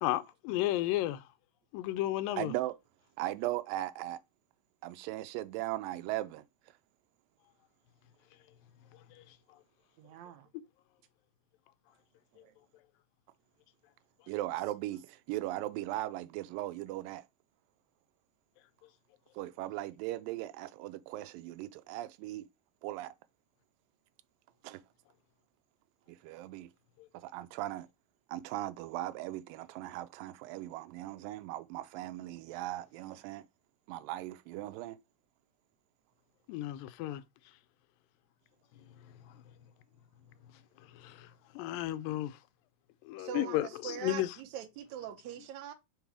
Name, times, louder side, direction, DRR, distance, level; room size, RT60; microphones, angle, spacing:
voice 1, 0.0-1.2 1.7-2.5 9.1-9.4 36.5-37.2 39.2-39.4 40.9-42.4 43.1-44.4, left 15 dB, 90° left, 2.3 m, -33 dB
voice 2, 2.3-2.8 3.2-4.2 4.8-6.4 14.3-17.3 19.4-22.5 22.8-23.1 24.6-24.8 26.1-26.7 27.1-27.9 28.3-33.4 33.9-35.0, right 15 dB, 85° right, 2.2 m, -38 dB
voice 3, 10.0-10.5 12.4-12.5 43.2-45.7, right 10 dB, 70° right, 2.1 m, -43 dB
5.4 x 3.9 x 4.8 m
omnidirectional pair, 3.9 m